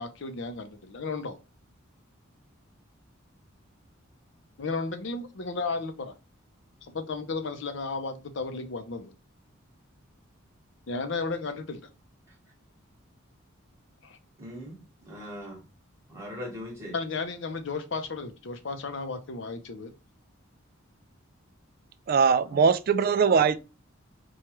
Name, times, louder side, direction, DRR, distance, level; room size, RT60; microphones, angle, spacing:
voice 1, 0.0-1.4 4.6-6.1 6.9-9.1 10.9-11.9 14.0-14.2 16.9-19.9, left 3 dB, 60° left, 0.6 m, -34 dB
voice 2, 14.4-15.6 16.1-16.9 22.5-22.6, equal, 15° right, 1.3 m, -40 dB
voice 3, 22.1-23.6, right 6 dB, 45° right, 0.3 m, -21 dB
4.6 x 2.3 x 3.0 m
head